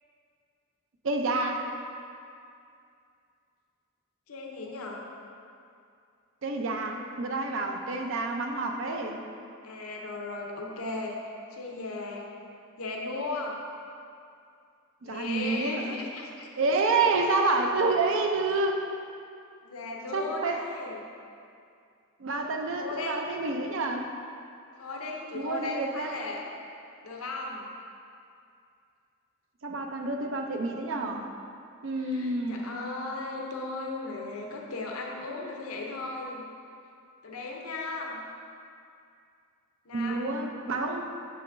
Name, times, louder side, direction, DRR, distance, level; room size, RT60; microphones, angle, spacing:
voice 1, 1.0-1.7 6.4-9.2 15.0-16.0 16.6-18.8 20.1-20.6 22.2-24.1 25.3-26.2 29.6-31.3 31.8-32.6 39.9-41.1, right 3 dB, 60° right, 3 dB, 0.5 m, -28 dB
voice 2, 4.3-5.0 9.6-12.2 12.8-13.6 15.0-16.5 19.6-21.0 22.8-23.2 24.8-26.4 27.0-27.7 31.9-36.4 37.2-38.2 39.9-40.4, left 3 dB, 80° left, -1 dB, 0.7 m, -36 dB
7.0 x 5.7 x 2.6 m, 2.4 s
head